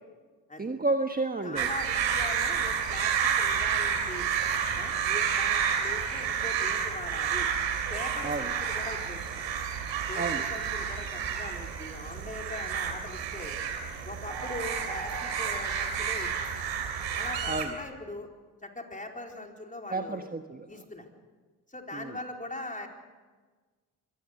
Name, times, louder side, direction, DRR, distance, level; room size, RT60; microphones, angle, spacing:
voice 1, 0.6-1.7 8.2-8.5 10.2-10.4 17.5-17.7 19.9-20.7 21.9-22.1, right 3 dB, 20° right, 6 dB, 1.4 m, -31 dB
voice 2, 1.4-4.3 4.8-7.5 7.9-9.4 10.1-13.6 14.0-16.5 17.2-18.3 18.6-20.2 20.7-21.1 21.7-22.9, left 2 dB, 15° left, 2 dB, 4.4 m, -41 dB
sound 1, 1.6-17.7, right 7 dB, 65° right, 3.4 m, -30 dB
24.5 x 18.5 x 6.6 m, 1.4 s
hypercardioid pair, 50°, 46 cm